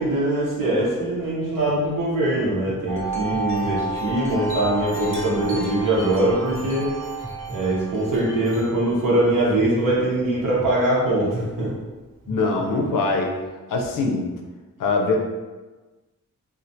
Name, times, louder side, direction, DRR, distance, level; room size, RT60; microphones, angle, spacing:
voice 1, 0.0-6.9 7.5-11.7, right 1 dB, 80° right, -6 dB, 0.9 m, -22 dB
sound 1, 2.4-2.8 3.3-3.8 4.3-4.7 5.2-5.7 6.2-6.7 7.2-7.6 8.3-8.7 9.3-9.7 10.3-10.7 11.3-11.7 12.3-12.7, right 1 dB, 10° right, 0.3 m, -36 dB
Wind chime, 2.9-9.4, right 2 dB, 40° right, 0.7 m, -32 dB
voice 2, 12.3-13.4 13.7-14.3 14.8-15.2, left 3 dB, 75° left, 1 dB, 0.5 m, -22 dB
2.3 x 2.1 x 2.6 m, 1.2 s
cardioid pair, 70°, 32 cm